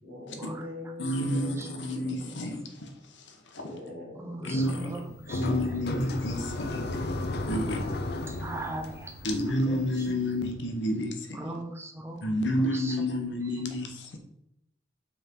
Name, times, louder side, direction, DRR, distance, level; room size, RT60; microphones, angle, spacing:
voice 1, 0.0-2.3 3.6-4.9 7.0-7.9 8.2-8.7, left 1 dB, 50° right, 2.3 m, -44 dB
voice 2, 1.0-2.9 3.2-3.6 4.4-4.9 5.3-7.1 7.5-7.8 9.2-11.4 12.2-14.2, left 1 dB, 70° left, 1.0 m, -30 dB
voice 3, 4.2-5.4 6.4-6.5 8.3-9.1 9.7-9.8 11.3-12.3 12.6-13.0, right 2 dB, 15° right, 0.6 m, -39 dB
sound 1, 4.6-10.5, left 2 dB, 55° left, 0.5 m, -35 dB
5.6 x 4.4 x 3.7 m
head